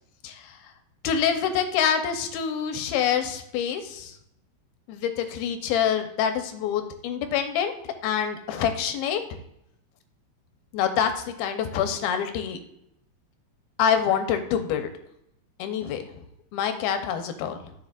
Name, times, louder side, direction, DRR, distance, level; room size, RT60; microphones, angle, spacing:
voice 1, 1.0-4.1 4.9-7.7 8.0-9.2 10.7-12.6 13.8-14.9 15.6-16.0 16.5-17.6, left 8 dB, 80° left, 7 dB, 2.6 m, -26 dB
13.0 x 7.1 x 2.4 m, 0.78 s
omnidirectional pair, 4.5 m